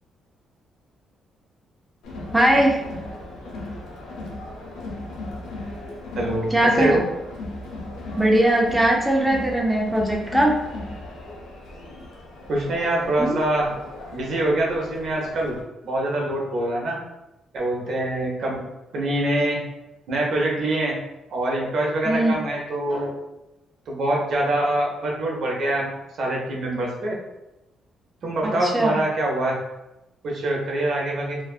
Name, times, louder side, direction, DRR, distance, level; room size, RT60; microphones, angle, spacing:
Crowd, 2.0-15.6, left 2 dB, 85° left, 0.5 m, -37 dB
voice 1, 2.3-2.8 6.5-7.0 8.2-10.6 13.2-13.4 22.1-22.4 28.4-29.0, right 1 dB, 5° right, -1 dB, 0.4 m, -20 dB
voice 2, 6.2-7.0 12.5-13.7 14.1-15.6 15.8-17.0 17.5-18.6 18.9-19.6 20.1-20.9 21.3-23.1 23.9-25.9 26.2-27.2 28.2-29.5 30.2-31.4, right 1 dB, 65° right, -2 dB, 0.7 m, -24 dB
2.5 x 2.3 x 2.3 m, 0.96 s
cardioid pair, 90°, 0 cm